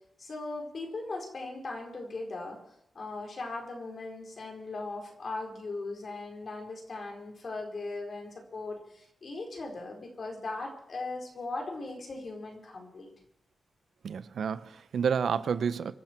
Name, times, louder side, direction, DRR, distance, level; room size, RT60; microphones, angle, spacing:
voice 1, 0.2-2.6 2.9-13.1, left 3 dB, 50° left, 4.4 m, -38 dB
voice 2, 14.0-15.9, right 6 dB, 75° right, 0.8 m, -30 dB
25.0 x 12.5 x 4.5 m
wide cardioid pair, 110°, 0 cm